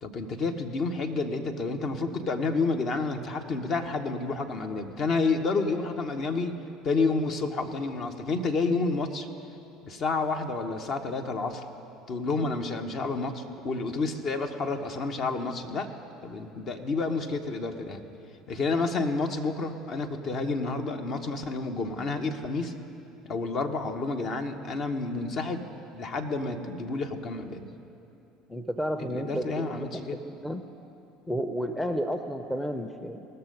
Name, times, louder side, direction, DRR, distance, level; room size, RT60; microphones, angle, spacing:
voice 1, 0.0-6.6 6.8-9.3 9.8-11.7 12.1-15.9 16.2-18.0 18.5-22.7 23.3-25.7 25.9-27.7 29.0-30.2, left 3 dB, 45° left, 6 dB, 0.9 m, -30 dB
voice 2, 28.5-30.7 31.3-33.3, equal, 5° left, 8 dB, 0.6 m, -32 dB
18.5 x 6.6 x 5.3 m, 2.9 s
figure-of-eight pair, 65°, 0 cm